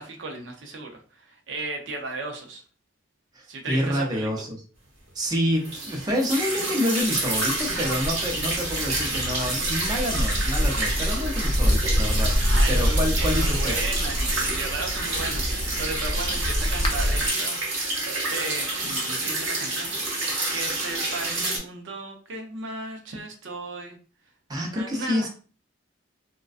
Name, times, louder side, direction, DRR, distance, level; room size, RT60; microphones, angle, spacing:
voice 1, 0.0-2.6 3.4-4.4 12.2-17.9 18.3-19.9 20.5-24.0 24.7-25.3, right 3 dB, 65° right, 2 dB, 0.5 m, -35 dB
voice 2, 3.3-4.6 5.1-12.3 12.7-13.7 24.5-25.3, equal, 20° right, -1 dB, 0.5 m, -27 dB
sound 1, 5.6-21.6, right 2 dB, 90° right, 1.1 m, -28 dB
sound 2, 7.1-17.3, equal, 25° left, 0.5 m, -26 dB
2.4 x 2.2 x 2.4 m, 0.38 s
head